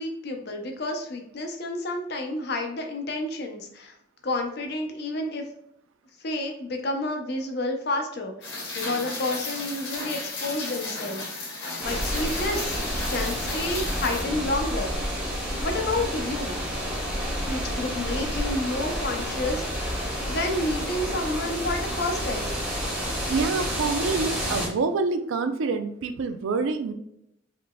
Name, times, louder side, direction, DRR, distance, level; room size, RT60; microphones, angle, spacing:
voice 1, 0.0-4.0 4.2-5.4 6.2-12.8 13.1-14.9 15.6-16.6 17.5-22.6, left 2 dB, 55° left, 4 dB, 0.6 m, -30 dB
Rain, 8.4-14.2, left 3 dB, 70° left, 1.3 m, -34 dB
sound 1, 11.8-24.7, equal, 10° right, 1.0 m, -30 dB
voice 2, 23.3-26.9, right 4 dB, 80° right, 8 dB, 0.4 m, -26 dB
3.7 x 3.3 x 2.2 m, 0.77 s
head